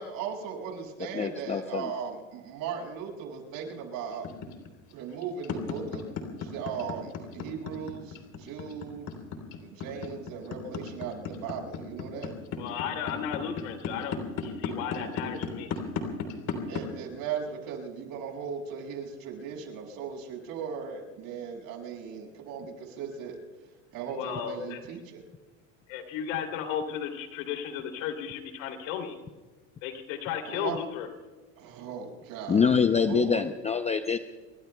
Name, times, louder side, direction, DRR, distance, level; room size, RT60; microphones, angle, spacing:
voice 1, 0.0-4.3 4.9-9.1 9.6-12.3 16.7-25.2 30.5-30.8 31.6-32.7 33.0-33.4, right 6 dB, 55° right, 0 dB, 6.3 m, -38 dB
voice 2, 1.1-1.9 32.5-34.2, left 6 dB, 15° left, 8 dB, 0.6 m, -25 dB
sound 1, 4.2-16.8, left 6 dB, 45° left, 3.5 m, -34 dB
voice 3, 12.6-15.7 24.1-24.8 25.9-29.1 29.8-31.1, left 8 dB, 70° left, 6 dB, 3.1 m, -34 dB
27.0 x 23.0 x 2.3 m, 1.3 s
supercardioid pair, 115°, 40 cm